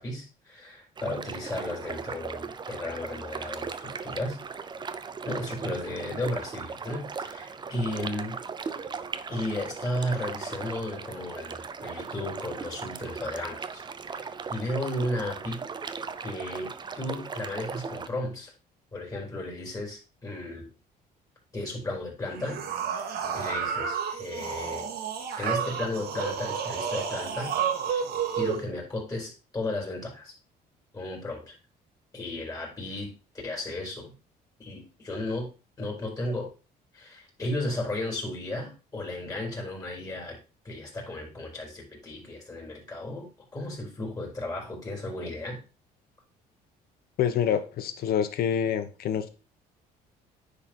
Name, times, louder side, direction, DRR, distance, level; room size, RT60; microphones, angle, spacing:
voice 1, 0.0-4.4 5.2-8.4 9.3-15.6 16.2-18.5 18.9-20.7 21.5-22.6 22.9-23.1 23.3-24.9 25.4-27.5 27.9-28.0 28.3-30.3 30.9-31.6 32.1-34.1 34.6-35.5 35.8-36.5 36.9-40.4 40.6-45.6, left 1 dB, 20° left, 0 dB, 4.2 m, -34 dB
sound 1, 1.0-18.1, right 5 dB, 25° right, 0.6 m, -38 dB
sound 2, 22.3-28.6, right 7 dB, 70° right, 1.9 m, -31 dB
voice 2, 47.2-49.3, left 8 dB, 65° left, 9 dB, 1.1 m, -26 dB
9.8 x 4.1 x 4.5 m, 0.32 s
cardioid pair, 110°, 17 cm